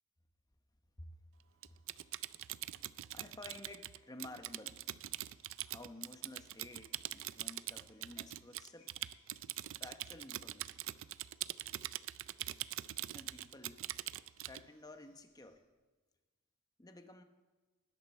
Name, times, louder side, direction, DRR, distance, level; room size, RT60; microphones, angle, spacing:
Typing, 1.6-14.6, right 14 dB, 65° right, 0.4 m, -43 dB
voice 1, 1.7-2.1 2.7-2.8 3.1-5.1 5.6-9.1 9.8-10.7 13.1-13.9 14.4-15.7 16.8-17.2, left 2 dB, 20° left, 7 dB, 1.0 m, -53 dB
sound 1, 4.4-15.6, left 4 dB, 75° left, 6.0 m, -78 dB
20.0 x 12.5 x 4.3 m, 1.3 s
head